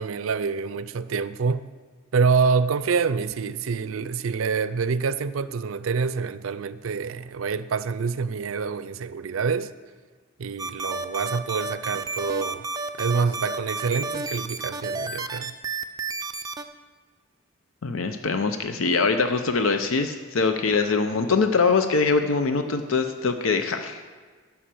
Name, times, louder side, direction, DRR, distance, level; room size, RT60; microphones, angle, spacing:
voice 1, 0.0-1.7 2.1-9.7 10.4-12.7 13.0-15.5, right 5 dB, 85° right, 0.4 m, -26 dB
sound 1, 10.6-16.6, right 3 dB, 20° right, 0.4 m, -31 dB
voice 2, 17.8-24.0, left 4 dB, 80° left, 0.6 m, -23 dB
11.0 x 5.8 x 7.5 m
head